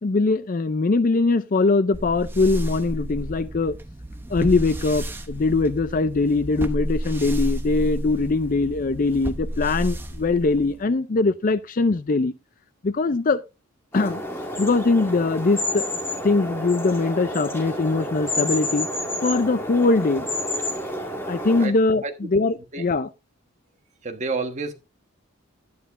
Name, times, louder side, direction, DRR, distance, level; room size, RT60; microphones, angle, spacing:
voice 1, 0.0-3.8 4.3-12.3 12.8-13.4 13.9-14.2 14.6-15.9 16.2-18.9 19.2-20.3 21.3-23.1, left 3 dB, 40° left, 0.5 m, -22 dB
sound 1, 1.9-10.8, equal, 10° right, 0.7 m, -31 dB
sound 2, 13.9-21.7, left 1 dB, 10° left, 1.9 m, -29 dB
voice 2, 24.0-24.7, right 4 dB, 35° right, 1.3 m, -28 dB
11.0 x 9.6 x 2.5 m
head